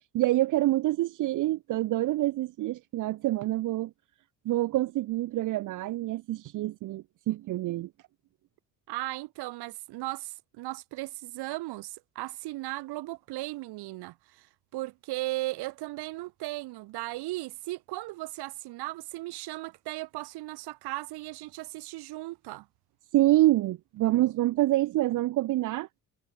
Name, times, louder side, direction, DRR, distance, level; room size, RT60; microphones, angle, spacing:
voice 1, 0.1-3.9 4.4-7.9 23.1-25.9, right 16 dB, 50° right, 0.8 m, -26 dB
voice 2, 8.9-14.5 14.7-22.6, right 19 dB, 80° right, 3.4 m, -37 dB
cardioid pair, 165°, 39 cm